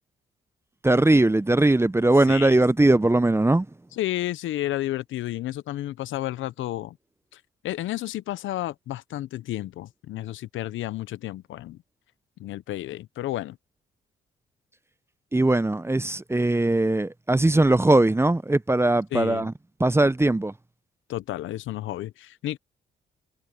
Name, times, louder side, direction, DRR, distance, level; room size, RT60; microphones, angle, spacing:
voice 1, 0.8-3.7 15.3-19.5 19.8-20.5, right 2 dB, 10° right, 0.8 m, -20 dB
voice 2, 3.9-7.0 7.3-11.8 12.4-13.6 19.1-19.5 21.1-22.6, left 14 dB, 75° left, 1.0 m, -31 dB
hypercardioid pair, 50°, 21 cm